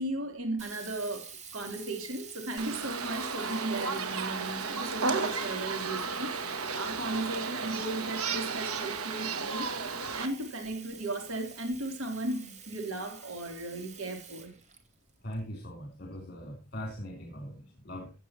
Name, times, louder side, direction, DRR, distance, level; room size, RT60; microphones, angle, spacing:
voice 1, 0.0-6.3 6.7-14.5, right 2 dB, 70° right, 3.2 m, -36 dB
Sink (filling or washing), 0.6-15.3, right 6 dB, 30° right, 2.4 m, -49 dB
sound 1, 2.6-10.3, right 4 dB, 85° right, 1.9 m, -33 dB
voice 2, 15.2-18.1, equal, 45° left, 3.4 m, -40 dB
15.5 x 9.1 x 2.9 m
head